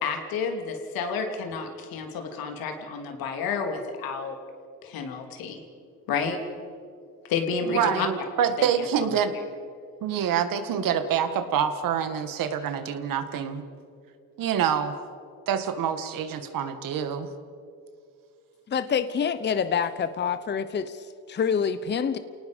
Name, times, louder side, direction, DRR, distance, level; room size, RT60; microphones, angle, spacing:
voice 1, 0.0-4.4 4.8-5.6 6.1-6.4 7.3-8.1 9.1-9.2, left 5 dB, 80° left, 4 dB, 2.9 m, -30 dB
voice 2, 7.6-9.3 10.0-13.7 14.4-15.0 15.5-17.3, right 8 dB, 70° right, 9 dB, 1.8 m, -26 dB
voice 3, 18.7-22.2, left 7 dB, 30° left, 13 dB, 0.8 m, -27 dB
28.0 x 18.5 x 5.3 m, 2.4 s
cardioid pair, 105°, 35 cm